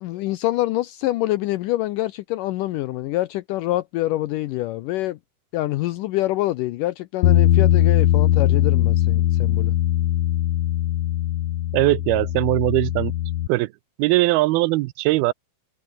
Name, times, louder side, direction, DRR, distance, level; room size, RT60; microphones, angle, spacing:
voice 1, 0.0-5.2 5.5-9.8, left 16 dB, 90° left, 1.9 m, -25 dB
Bass guitar, 7.2-13.5, left 12 dB, 65° left, 1.8 m, -20 dB
voice 2, 11.7-13.1 13.5-13.7 14.0-15.3, right 19 dB, 80° right, 2.5 m, -20 dB
omnidirectional pair, 4.6 m